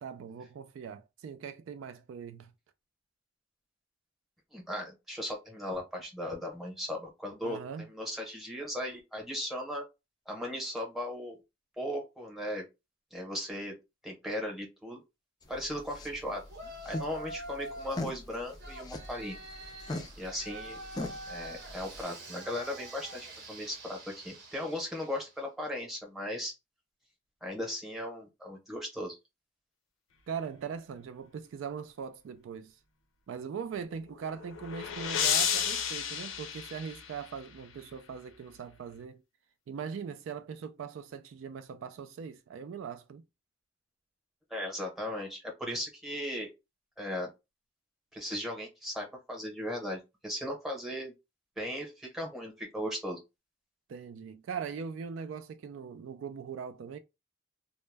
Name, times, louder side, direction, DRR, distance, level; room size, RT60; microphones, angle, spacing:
voice 1, 0.0-2.5 7.4-7.9 30.3-32.7 33.3-39.2 39.7-43.2 53.9-57.0, right 6 dB, 75° right, 0.3 m, -40 dB
voice 2, 4.5-7.6 7.9-9.8 10.3-11.4 11.8-12.6 13.1-13.7 14.0-15.0 15.5-16.4 16.8-19.4 20.2-20.8 21.3-26.5 27.4-29.2 44.5-46.5 47.0-47.3 48.1-51.1 51.6-53.2, left 1 dB, ahead, 0.8 m, -37 dB
sound 1, 15.4-22.0, left 2 dB, 20° left, 0.3 m, -42 dB
Yell, 16.5-18.0 18.6-25.3, right 1 dB, 60° right, 0.8 m, -45 dB
sound 2, 34.1-37.5, left 8 dB, 80° left, 0.5 m, -32 dB
2.2 x 2.0 x 3.2 m
head